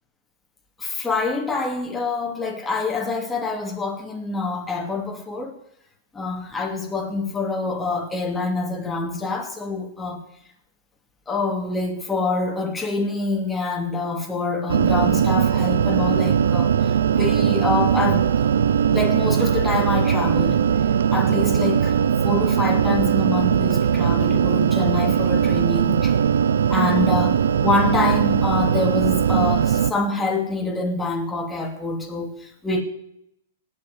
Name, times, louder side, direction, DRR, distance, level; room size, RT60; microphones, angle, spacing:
voice 1, 0.8-5.6 6.1-10.2 11.3-18.5 18.9-20.6 21.1-26.1 26.7-32.8, left 3 dB, 10° left, 2.6 m, -26 dB
sound 1, 14.7-29.9, right 8 dB, 80° right, 0.6 m, -20 dB
17.5 x 5.9 x 9.8 m
hypercardioid pair, 135°, 0 cm